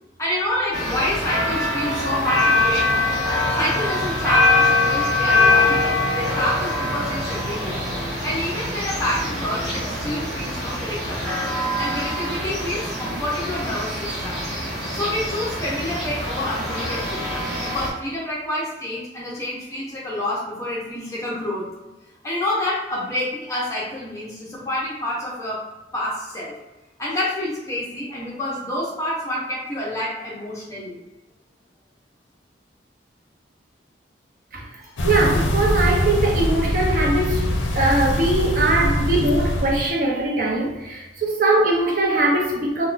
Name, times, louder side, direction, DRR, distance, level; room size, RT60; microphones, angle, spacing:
voice 1, 0.2-7.9 8.2-11.4 11.8-14.4 14.9-21.6 22.2-25.6 25.9-26.6 27.0-31.0 34.8-34.9, left 1 dB, 15° left, -6 dB, 0.6 m, -28 dB
sound 1, 0.7-17.9, left 2 dB, 5° right, 1.1 m, -23 dB
sound 2, 35.0-39.9, left 1 dB, 80° left, 0.5 m, -23 dB
voice 2, 35.0-37.5 37.7-42.9, right 2 dB, 45° right, -1 dB, 0.6 m, -21 dB
3.5 x 2.2 x 2.4 m, 1.1 s
head